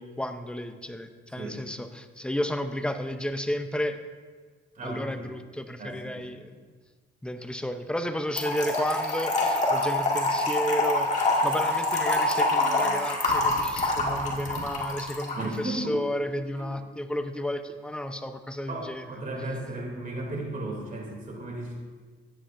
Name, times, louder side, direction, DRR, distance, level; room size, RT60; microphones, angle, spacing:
voice 1, 0.0-4.0 4.8-6.6 7.2-19.1, equal, 5° left, 8 dB, 0.6 m, -32 dB
voice 2, 4.7-5.3 5.8-6.2 15.4-16.0 16.5-16.7 18.7-21.8, right 2 dB, 40° right, 0 dB, 2.8 m, -35 dB
Trickle dribble / Fill (with liquid), 8.4-15.5, left 2 dB, 35° left, 1.9 m, -26 dB
sound 1, 11.1-14.7, right 2 dB, 80° right, 1.9 m, -43 dB
13.0 x 9.4 x 2.6 m, 1.5 s
cardioid pair, 90°, 20 cm